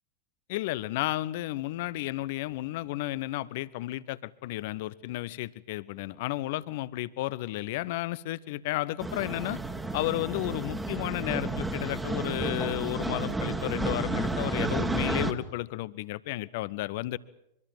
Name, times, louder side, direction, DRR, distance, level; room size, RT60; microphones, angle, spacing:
voice 1, 0.5-9.6 9.9-17.2, left 17 dB, 50° left, 20 dB, 0.9 m, -32 dB
sound 1, 9.0-15.3, right 2 dB, 10° right, 1.9 m, -31 dB
24.5 x 23.0 x 7.5 m, 0.80 s
figure-of-eight pair, 90°, 0 cm